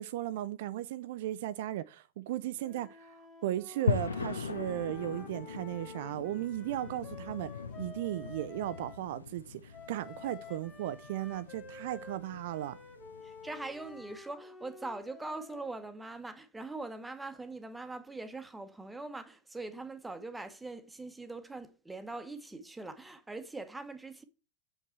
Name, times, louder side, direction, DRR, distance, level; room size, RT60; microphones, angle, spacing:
voice 1, 0.0-7.5 7.8-12.8, right 13 dB, 55° right, 0.3 m, -36 dB
Wind instrument woodwind instrument, 2.6-9.0 9.7-15.7, left 3 dB, 15° left, 1.7 m, -51 dB
sound 1, 3.9-14.1, left 5 dB, 75° left, 0.6 m, -40 dB
voice 2, 13.2-24.2, right 2 dB, 5° right, 1.0 m, -42 dB
7.1 x 5.5 x 4.4 m
figure-of-eight pair, 90°, 0 cm